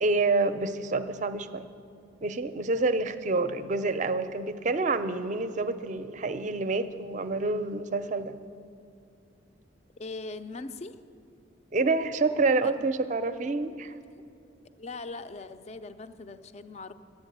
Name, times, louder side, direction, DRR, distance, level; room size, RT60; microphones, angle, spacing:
voice 1, 0.0-1.7 2.2-8.3 11.7-13.9, right 3 dB, 40° right, 11 dB, 0.5 m, -28 dB
voice 2, 10.0-11.0 12.8-12.9 14.1-14.2 14.8-16.9, left 3 dB, 35° left, 11 dB, 0.4 m, -40 dB
10.5 x 8.3 x 8.0 m, 2.5 s
head